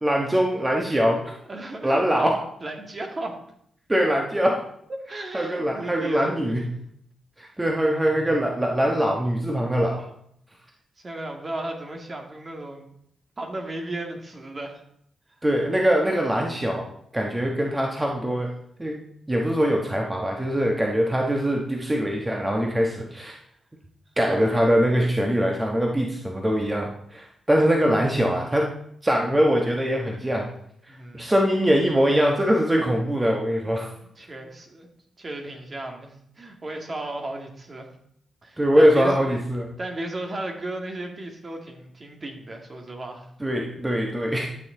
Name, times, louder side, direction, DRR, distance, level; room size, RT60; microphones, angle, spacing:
voice 1, 0.0-1.3 1.8-2.4 3.9-4.6 5.3-6.6 7.4-10.1 15.4-16.9 17.1-18.5 18.8-19.0 19.3-23.4 24.2-28.7 29.0-30.5 31.1-33.9 38.6-39.7 43.4-44.7, equal, 15° right, 0 dB, 1.3 m, -22 dB
voice 2, 1.0-3.4 5.1-6.7 11.0-12.9 13.4-14.8 24.2-24.6 30.9-31.3 33.6-33.7 34.2-34.9 35.2-37.9 38.4-39.2 39.8-43.3, right 2 dB, 40° right, 2 dB, 2.1 m, -35 dB
11.5 x 6.8 x 3.9 m, 0.69 s
cardioid pair, 70°, 0 cm